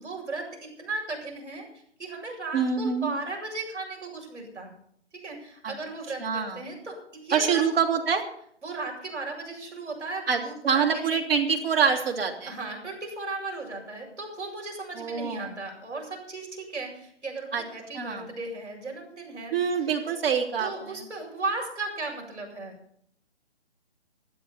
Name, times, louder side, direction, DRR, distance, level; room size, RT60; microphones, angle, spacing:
voice 1, 0.0-1.7 2.0-4.7 5.2-7.6 8.6-11.2 12.5-19.6 20.6-22.7, right 3 dB, 80° right, 1 dB, 7.8 m, -36 dB
voice 2, 2.5-3.1 5.6-5.7 6.2-6.6 7.3-8.2 10.3-12.5 15.0-15.5 17.5-17.6 17.9-18.3 19.5-21.1, right 6 dB, 55° right, 2 dB, 3.2 m, -26 dB
21.0 x 12.0 x 4.3 m, 0.66 s
figure-of-eight pair, 145°, 35 cm